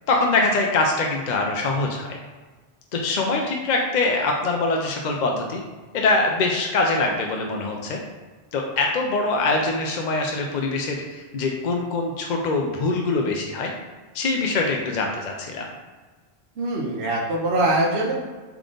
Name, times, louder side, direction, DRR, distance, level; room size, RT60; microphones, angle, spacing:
voice 1, 0.1-2.2 2.9-5.6 5.9-8.0 8.5-13.7 14.1-15.7, left 3 dB, 55° left, 1 dB, 0.5 m, -23 dB
voice 2, 16.6-18.1, right 1 dB, 70° right, -3 dB, 1.0 m, -23 dB
3.7 x 3.4 x 3.7 m, 1.3 s
omnidirectional pair, 1.1 m